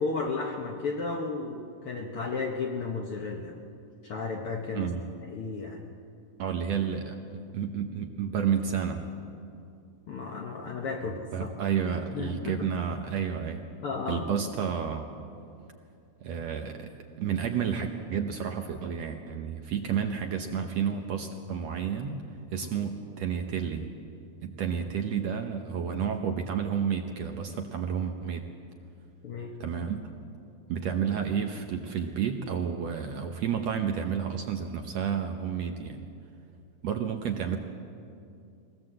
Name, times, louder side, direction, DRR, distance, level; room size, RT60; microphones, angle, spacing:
voice 1, 0.0-3.6 4.0-4.9 5.2-5.8 10.1-11.5 12.1-12.7 13.8-14.3 22.6-22.7 29.2-29.6, left 4 dB, 60° left, 1 dB, 1.5 m, -33 dB
voice 2, 4.8-5.1 6.4-9.0 11.3-13.7 14.1-15.1 16.2-16.9 17.2-22.2 22.5-23.9 24.4-28.4 29.6-30.1 30.7-36.1 36.8-37.6, right 7 dB, 65° right, 4 dB, 1.8 m, -31 dB
22.5 x 18.0 x 7.7 m, 2.5 s
omnidirectional pair, 3.9 m